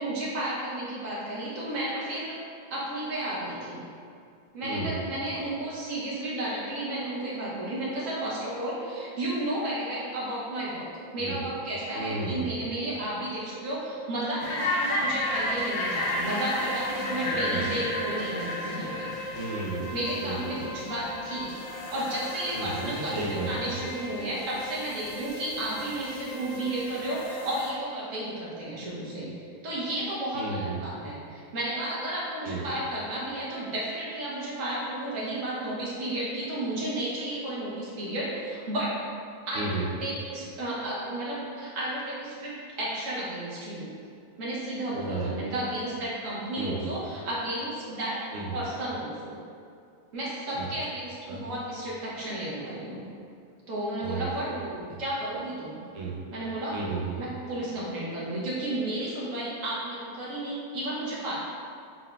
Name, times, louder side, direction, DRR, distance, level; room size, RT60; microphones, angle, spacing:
voice 1, 0.0-2.4 2.7-3.8 4.5-10.9 11.1-19.1 19.9-21.5 21.9-23.2 23.5-29.3 29.6-38.9 39.5-43.9 44.4-48.2 48.5-49.4 50.1-53.0 53.7-55.8 56.3-56.7 57.2-61.4, right 1 dB, 50° right, -7 dB, 1.2 m, -32 dB
voice 2, 4.6-5.0 11.2-11.4 11.9-12.5 17.3-17.7 19.3-19.9 20.2-20.6 22.5-23.7 30.3-30.8 32.4-32.7 39.5-39.9 44.9-45.4 46.5-46.9 48.3-48.6 50.6-50.7 51.3-51.4 54.0-54.3 55.9-56.2 56.7-57.1, right 3 dB, 85° right, -4 dB, 0.6 m, -33 dB
sound 1, 14.4-27.7, left 1 dB, 85° left, 1.4 m, -33 dB
4.2 x 4.0 x 2.3 m, 2.4 s
omnidirectional pair, 2.0 m